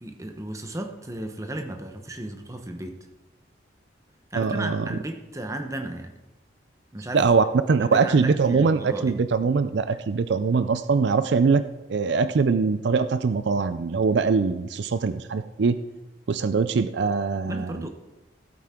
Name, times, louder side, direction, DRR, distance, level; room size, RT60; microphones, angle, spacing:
voice 1, 0.0-3.0 4.3-6.1 6.9-7.2 7.8-9.2 9.9-10.0 17.4-17.9, right 1 dB, 15° right, 5 dB, 0.9 m, -34 dB
voice 2, 4.3-4.8 7.1-11.6 11.9-15.8 16.3-17.8, right 4 dB, 65° right, 12 dB, 0.4 m, -22 dB
15.5 x 8.8 x 3.7 m, 1.0 s
head